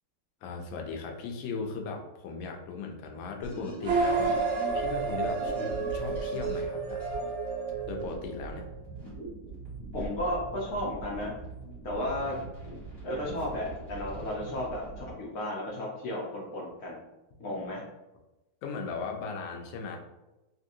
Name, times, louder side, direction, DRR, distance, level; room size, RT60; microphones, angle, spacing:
voice 1, 0.4-7.0 7.9-8.7 18.6-20.0, left 4 dB, 85° left, 2 dB, 1.3 m, -38 dB
sound 1, 3.4-15.1, right 3 dB, 30° left, 1.5 m, -42 dB
sound 2, 3.8-8.6, right 4 dB, 85° right, 1.4 m, -30 dB
voice 2, 9.9-11.3 11.8-12.3 13.0-17.0 17.4-17.8, left 1 dB, 65° left, -3 dB, 1.0 m, -34 dB
3.2 x 2.6 x 2.6 m, 1.0 s
omnidirectional pair, 2.1 m